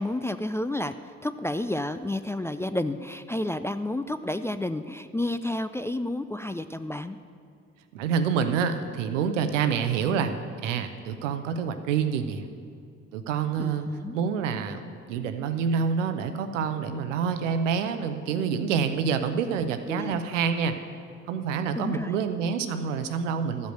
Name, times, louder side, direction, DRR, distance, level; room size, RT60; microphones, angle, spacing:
voice 1, 0.0-7.2 13.6-14.2 19.9-20.2 21.8-22.1, left 1 dB, 10° left, 10 dB, 0.3 m, -31 dB
voice 2, 7.9-10.3 10.6-12.5 13.1-13.9 14.1-20.7 21.3-23.7, right 6 dB, 85° right, 9 dB, 0.7 m, -27 dB
12.5 x 5.2 x 7.8 m, 2.3 s
hypercardioid pair, 45°, 36 cm